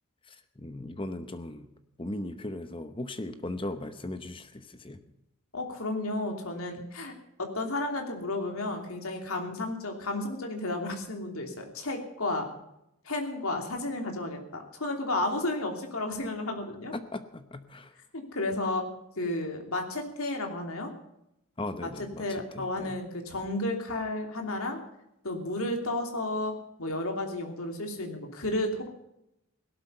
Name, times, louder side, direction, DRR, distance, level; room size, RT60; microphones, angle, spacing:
voice 1, 0.3-1.7 2.0-5.0 16.9-17.9 21.6-22.2 22.5-23.0, left 1 dB, 25° left, 10 dB, 0.9 m, -38 dB
voice 2, 5.5-7.1 7.4-12.5 13.0-16.9 18.1-18.8 19.2-20.9 21.8-24.8 25.2-26.5 26.8-28.9, left 2 dB, 70° left, 3 dB, 2.9 m, -32 dB
17.5 x 12.5 x 5.5 m, 0.82 s
head